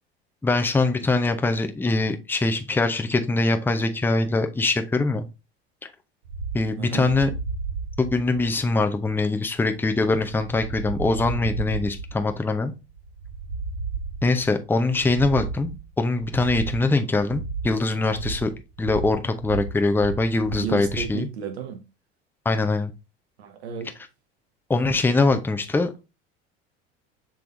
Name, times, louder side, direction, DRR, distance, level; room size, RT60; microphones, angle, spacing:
voice 1, 0.4-5.3 6.5-7.3 8.0-12.7 14.2-18.5 18.8-21.3 22.4-22.9 24.7-25.9, left 3 dB, 5° left, 0.6 m, -23 dB
sound 1, 6.3-21.2, right 4 dB, 65° right, 1.3 m, -34 dB
voice 2, 6.8-7.1 20.6-21.8 23.4-23.9, right 8 dB, 80° right, 1.1 m, -32 dB
6.2 x 3.4 x 2.5 m
hypercardioid pair, 80°, 32 cm